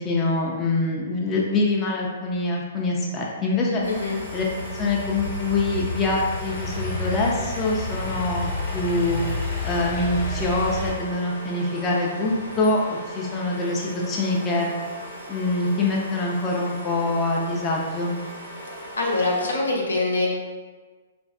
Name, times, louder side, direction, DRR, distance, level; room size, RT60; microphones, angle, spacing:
voice 1, 0.0-3.8 4.3-4.4 4.7-9.2 9.6-14.7 15.3-18.2, left 2 dB, 20° left, -3 dB, 0.5 m, -25 dB
Idling / Accelerating revving vroom, 3.8-10.9, left 2 dB, 45° left, 0.9 m, -31 dB
sound 1, 3.8-19.5, equal, 75° right, 1.2 m, -39 dB
voice 2, 3.9-4.2 19.0-20.3, left 2 dB, 80° left, -2 dB, 0.7 m, -24 dB
3.1 x 2.5 x 2.3 m, 1.4 s
hypercardioid pair, 125°, 0 cm